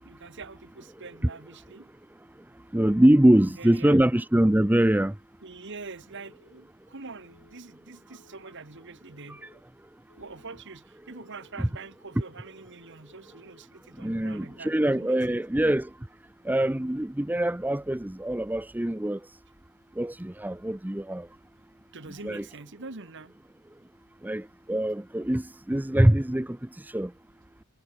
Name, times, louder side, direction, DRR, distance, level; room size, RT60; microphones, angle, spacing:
voice 1, 0.0-1.9 3.3-4.0 5.4-9.4 10.2-15.4 21.9-23.3, right 3 dB, 55° right, 1.8 m, -44 dB
voice 2, 2.7-5.1 9.3-9.4 14.0-15.9 16.4-19.2 20.0-21.3 22.2-22.4 24.2-27.1, right 1 dB, 10° right, 0.5 m, -23 dB
Telephone, 6.1-6.6 7.1-7.6 8.1-8.6 9.1-9.6 10.1-10.6 11.1-11.6 12.1-12.6 13.1-13.6 14.1-14.6, left 2 dB, 55° left, 4.8 m, -60 dB
head